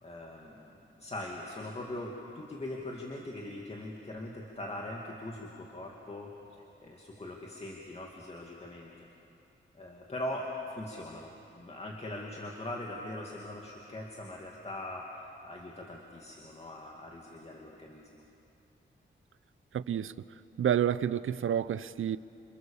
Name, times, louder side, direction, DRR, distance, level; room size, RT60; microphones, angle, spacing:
voice 1, 0.0-6.3 6.8-8.9 9.7-18.2, left 1 dB, 30° left, 2.3 m, -41 dB
voice 2, 19.7-20.1 20.6-22.2, right 9 dB, 85° right, 0.6 m, -29 dB
28.5 x 27.0 x 7.2 m
wide cardioid pair, 140°, 20 cm